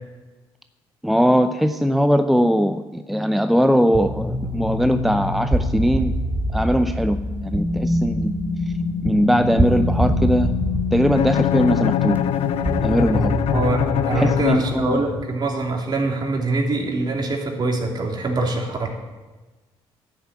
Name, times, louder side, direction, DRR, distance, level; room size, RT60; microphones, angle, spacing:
voice 1, 1.0-6.1 6.5-7.2 7.4-8.3 9.0-10.5 10.9-12.2 12.8-13.3 14.2-15.0, equal, ahead, 9 dB, 0.6 m, -20 dB
sound 1, 3.9-15.2, left 1 dB, 20° right, 1.7 m, -24 dB
Bowed string instrument, 11.1-15.3, left 11 dB, 65° left, 0.6 m, -24 dB
voice 2, 13.5-18.9, right 2 dB, 40° right, 0 dB, 3.0 m, -24 dB
11.0 x 6.9 x 8.3 m, 1.2 s
supercardioid pair, 65°, 11 cm